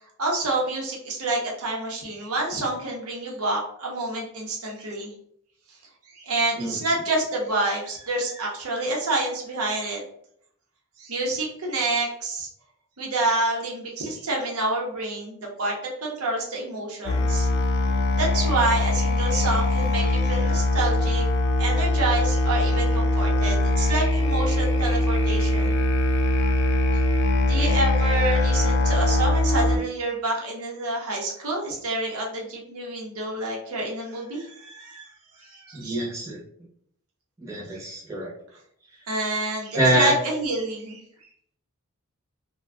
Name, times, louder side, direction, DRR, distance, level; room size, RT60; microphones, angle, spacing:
voice 1, 0.2-5.1 5.7-5.8 6.1-10.0 11.0-12.5 13.0-15.8 16.0-17.5 18.1-21.2 21.6-25.8 27.4-35.1 35.4-36.0 37.7-37.9 39.1-41.0, right 2 dB, 85° right, -1 dB, 0.8 m, -28 dB
Musical instrument, 17.1-29.8, left 2 dB, 50° left, 0.3 m, -22 dB
voice 2, 35.7-36.4 37.4-38.3 39.7-40.1, right 1 dB, 15° right, -5 dB, 0.7 m, -24 dB
2.4 x 2.2 x 3.3 m, 0.68 s
head